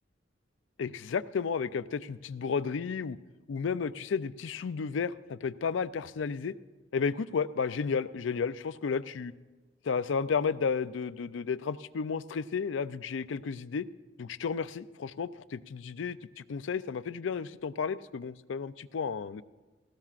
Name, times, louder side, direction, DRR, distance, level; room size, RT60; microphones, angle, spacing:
voice 1, 0.8-3.2 3.5-6.5 6.9-9.3 9.8-13.8 14.2-19.4, left 5 dB, 80° left, 14 dB, 0.4 m, -32 dB
18.5 x 16.5 x 2.5 m, 1.2 s
head